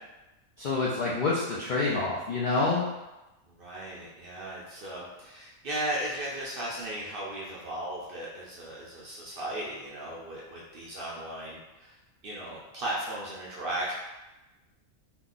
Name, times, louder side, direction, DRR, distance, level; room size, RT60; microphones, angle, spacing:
voice 1, 0.6-2.9, left 3 dB, 65° left, -5 dB, 0.5 m, -27 dB
voice 2, 3.5-12.0 12.2-13.9, right 1 dB, 55° right, -5 dB, 0.6 m, -36 dB
2.8 x 2.2 x 3.7 m, 1.0 s
omnidirectional pair, 1.4 m